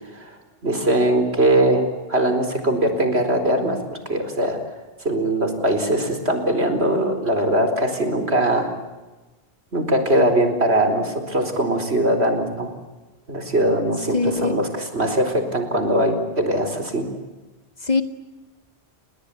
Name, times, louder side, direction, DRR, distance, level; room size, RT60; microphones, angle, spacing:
voice 1, 0.6-1.8 2.1-4.6 5.0-8.7 9.7-12.7 13.3-14.7 14.9-17.1, right 1 dB, 75° right, 7 dB, 4.5 m, -21 dB
voice 2, 14.1-14.6 17.8-18.0, left 4 dB, 40° left, 8 dB, 2.0 m, -22 dB
29.5 x 21.0 x 8.5 m, 1.2 s
omnidirectional pair, 1.1 m